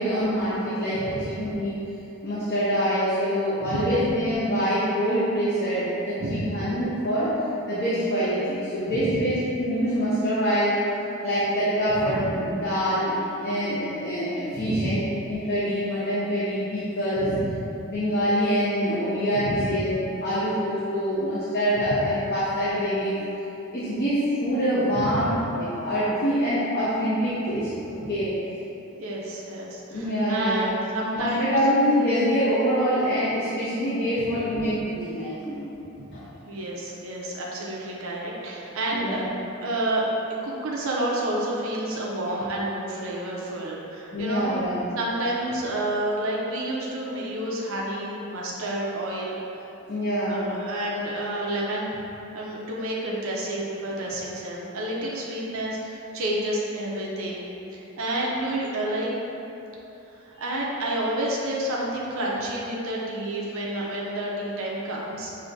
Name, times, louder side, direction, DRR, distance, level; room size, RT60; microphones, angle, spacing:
voice 1, 0.0-1.8 2.2-7.3 7.7-10.8 11.2-15.0 15.3-17.3 17.9-23.2 23.7-28.3 29.9-30.7 31.1-35.6 36.1-36.2 38.9-39.3 44.1-44.8 49.9-50.4, equal, 50° left, -11 dB, 0.8 m, -25 dB
voice 2, 8.9-9.2 12.0-12.3 14.6-14.9 17.2-17.6 19.4-19.7 24.9-25.3 28.0-28.1 29.0-31.5 36.0-36.1 36.5-39.2 39.6-40.0 40.4-44.6 45.0-49.4 50.3-52.0 52.3-57.4 57.7-59.1 60.2-65.3, right 1 dB, 75° right, -4 dB, 0.6 m, -29 dB
6.3 x 2.7 x 2.6 m, 2.9 s
head